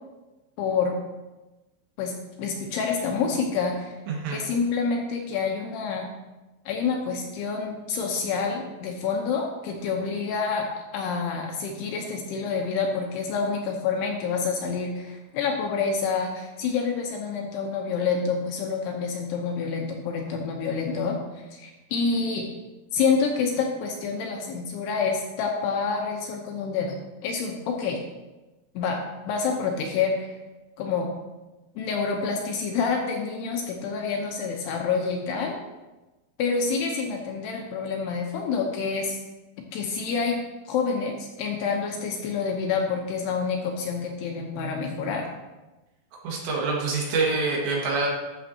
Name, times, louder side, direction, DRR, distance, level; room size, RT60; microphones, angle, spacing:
voice 1, 0.6-1.0 2.0-2.1 2.4-4.0 4.3-6.1 6.7-22.5 22.9-27.0 27.2-28.0 28.8-30.4 30.8-31.1 31.8-35.6 36.4-39.2 39.7-45.3, left 5 dB, 75° left, 1 dB, 2.6 m, -27 dB
voice 2, 4.1-4.4 46.2-48.1, right 3 dB, 75° right, -3 dB, 3.9 m, -26 dB
12.5 x 6.8 x 2.8 m, 1.1 s
omnidirectional pair, 5.2 m